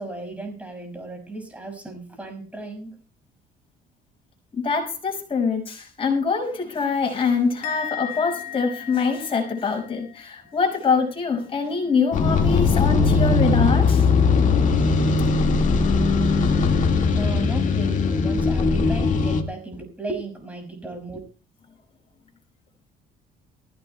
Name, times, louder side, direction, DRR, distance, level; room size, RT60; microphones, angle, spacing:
voice 1, 0.0-3.0 15.5-15.6 17.1-21.2, right 2 dB, 10° right, 4 dB, 6.0 m, -35 dB
voice 2, 4.5-14.1, left 5 dB, 30° left, 2 dB, 6.0 m, -24 dB
Musical instrument, 7.6-11.0 11.3-11.7, left 11 dB, 85° left, 1.1 m, -37 dB
sound 1, 12.1-19.4, left 4 dB, 50° left, 2.0 m, -19 dB
23.5 x 16.0 x 2.3 m, 0.35 s
cardioid pair, 110°, 17 cm